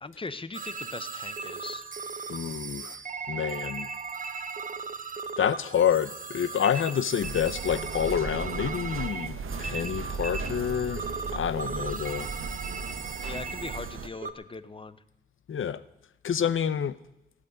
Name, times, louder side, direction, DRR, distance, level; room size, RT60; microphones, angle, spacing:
voice 1, 0.0-1.8 13.2-15.0, left 3 dB, 25° left, 14 dB, 0.6 m, -40 dB
sound 1, 0.5-14.3, right 5 dB, 40° right, 0.8 m, -37 dB
voice 2, 2.3-3.0 3.3-3.9 5.4-11.0 11.3-12.3 15.5-15.8 16.2-17.0, left 8 dB, 70° left, 16 dB, 0.7 m, -28 dB
sound 2, 7.2-14.1, right 4 dB, 75° right, 1.0 m, -37 dB
16.5 x 6.2 x 9.9 m, 0.87 s
wide cardioid pair, 145°, 21 cm